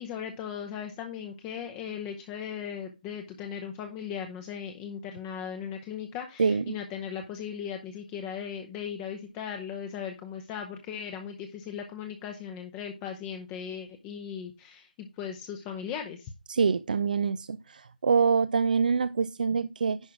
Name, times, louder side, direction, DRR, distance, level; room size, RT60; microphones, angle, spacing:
voice 1, 0.0-16.3, left 8 dB, 15° left, 0.8 m, -38 dB
voice 2, 6.4-6.8 16.5-20.0, right 5 dB, 60° right, 0.5 m, -25 dB
10.5 x 3.7 x 6.0 m
figure-of-eight pair, 155°, 5 cm